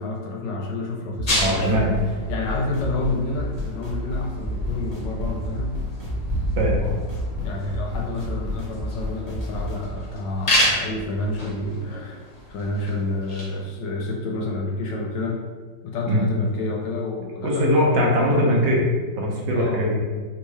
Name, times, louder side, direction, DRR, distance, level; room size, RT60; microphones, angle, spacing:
voice 1, 0.0-2.0 2.3-5.8 7.4-15.4 15.8-18.5 19.5-19.9, left 2 dB, 75° left, 0 dB, 1.1 m, -29 dB
sound 1, 1.1-9.8, left 1 dB, 25° right, 0.6 m, -31 dB
sound 2, 1.3-13.6, equal, 45° left, 0.5 m, -30 dB
voice 2, 1.4-1.9 6.6-6.9 16.1-16.2 17.4-18.8 19.2-20.0, equal, 70° right, -3 dB, 1.2 m, -21 dB
3.6 x 2.6 x 3.0 m, 1.4 s
omnidirectional pair, 2.1 m